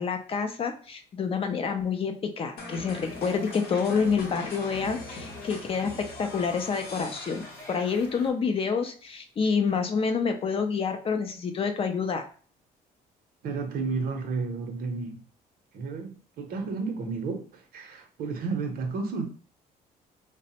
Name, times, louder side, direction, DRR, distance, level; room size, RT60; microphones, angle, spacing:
voice 1, 0.0-5.9 6.2-12.2, left 5 dB, 35° left, 0.4 m, -28 dB
sound 1, 2.6-8.2, left 3 dB, 70° left, 0.7 m, -41 dB
sound 2, 2.9-8.3, left 1 dB, 15° left, 0.8 m, -48 dB
voice 2, 13.4-15.2 15.7-19.3, right 4 dB, 60° right, 0.6 m, -32 dB
3.1 x 2.0 x 2.8 m
cardioid pair, 110°, 17 cm